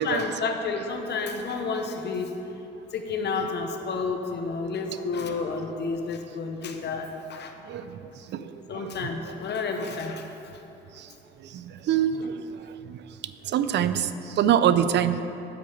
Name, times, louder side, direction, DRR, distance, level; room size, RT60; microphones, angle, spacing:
voice 1, 0.0-2.3 2.9-7.5 8.7-10.3, left 4 dB, 60° left, 4 dB, 1.0 m, -30 dB
voice 2, 7.7-8.0 8.3-8.9 11.0-11.1 11.5-12.6 12.9-13.0 13.5-15.2, right 9 dB, 60° right, 12 dB, 0.4 m, -25 dB
9.1 x 4.8 x 7.1 m, 3.0 s
cardioid pair, 90°, 20 cm